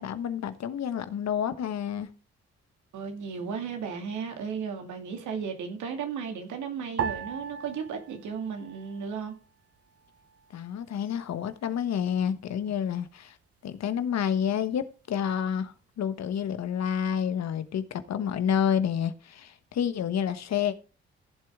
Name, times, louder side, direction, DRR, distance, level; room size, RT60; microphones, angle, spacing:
voice 1, 0.0-2.1 10.5-13.4 13.6-20.7, left 8 dB, 60° left, 1.2 m, -29 dB
voice 2, 2.9-9.3, right 6 dB, 75° right, 2.3 m, -35 dB
sound 1, 7.0-9.5 9.8-10.7 11.3-11.7, right 7 dB, 50° right, 1.0 m, -37 dB
15.0 x 7.8 x 3.6 m
hypercardioid pair, 50°, 30 cm